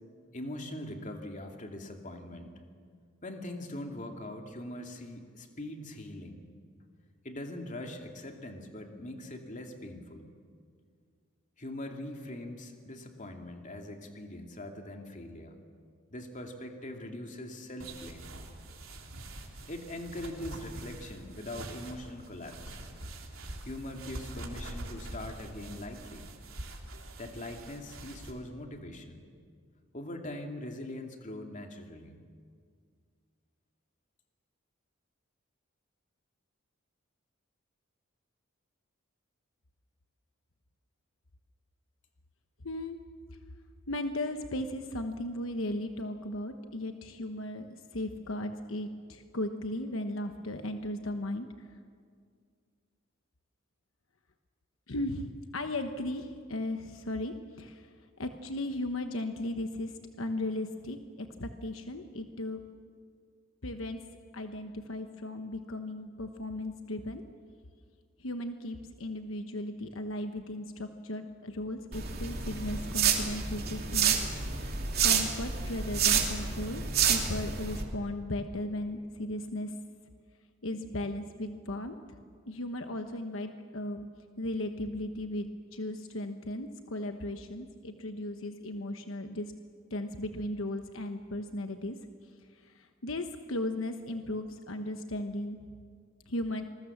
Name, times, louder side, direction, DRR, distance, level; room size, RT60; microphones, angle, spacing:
voice 1, 0.3-2.5 3.2-6.4 7.2-10.3 11.6-15.6 16.1-18.3 19.7-22.8 23.6-26.3 27.2-29.2 29.9-32.2, left 1 dB, 40° left, 3 dB, 2.6 m, -42 dB
sound 1, 17.8-28.3, right 1 dB, 85° right, 3.5 m, -44 dB
voice 2, 42.6-43.0 43.9-51.7 54.9-57.9 58.2-62.6 63.6-64.0 64.3-67.2 68.2-74.7 75.0-76.8 77.1-79.7 80.6-82.0 82.5-84.1 84.4-89.5 89.9-92.0 92.6-95.6 96.3-96.6, left 1 dB, 75° left, 6 dB, 1.2 m, -36 dB
sound 2, 71.9-77.8, right 7 dB, 50° right, 2.9 m, -29 dB
27.5 x 21.0 x 7.3 m, 2.1 s
head